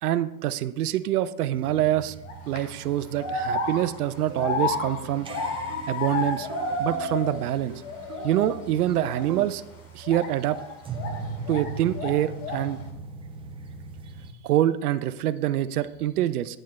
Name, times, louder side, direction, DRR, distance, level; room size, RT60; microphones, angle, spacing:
voice 1, 0.0-2.2 2.5-5.3 5.9-6.5 6.8-7.8 8.2-9.6 9.9-10.6 11.5-12.8 14.4-16.6, right 12 dB, 75° right, 13 dB, 0.6 m, -25 dB
sound 1, 1.5-14.3, right 4 dB, 10° right, 0.6 m, -41 dB
sound 2, 2.2-2.6 3.2-7.5 7.8-8.6 9.0-9.3 10.0-11.7 11.9-12.7, left 3 dB, 55° left, 2.2 m, -31 dB
sound 3, 4.3-9.5, right 8 dB, 35° right, 1.1 m, -43 dB
8.9 x 8.4 x 3.2 m, 0.89 s
hypercardioid pair, 115°, 46 cm